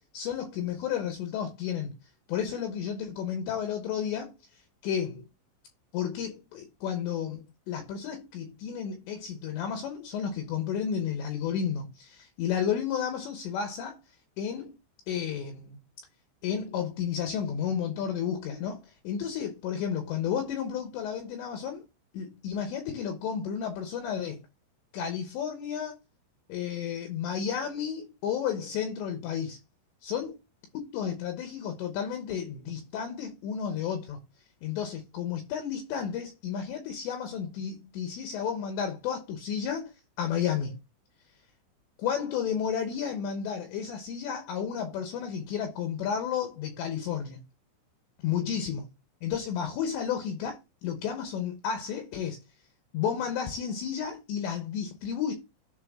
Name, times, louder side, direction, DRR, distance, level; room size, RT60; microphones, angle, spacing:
voice 1, 0.1-1.9 2.3-5.2 5.9-14.0 14.4-14.7 15.1-15.8 16.4-21.8 22.1-24.5 24.9-26.0 26.5-29.6 30.0-30.4 30.7-34.2 34.6-40.8 42.0-47.4 48.2-48.8 49.2-52.4 52.9-55.3, left 8 dB, 75° left, 3.0 m, -32 dB
11.5 x 4.3 x 3.6 m
omnidirectional pair, 5.7 m